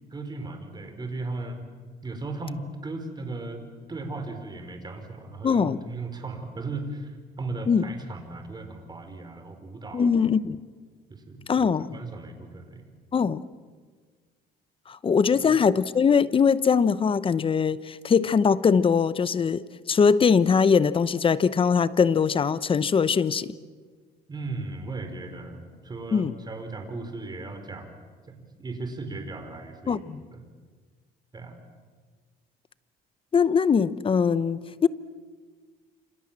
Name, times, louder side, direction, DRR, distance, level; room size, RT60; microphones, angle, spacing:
voice 1, 0.1-1.6 2.0-3.6 3.9-10.1 11.1-11.7 11.9-12.8 24.3-27.9 28.3-30.0 30.3-30.4 31.3-31.6, right 3 dB, 25° right, 6 dB, 4.7 m, -36 dB
voice 2, 5.4-5.8 7.7-7.9 9.9-10.6 11.5-12.0 13.1-13.4 14.9-23.5 26.1-26.3 29.9-30.2 33.3-34.9, left 6 dB, 30° left, 17 dB, 0.9 m, -22 dB
28.5 x 26.5 x 7.5 m, 1.5 s
cardioid pair, 110°, 17 cm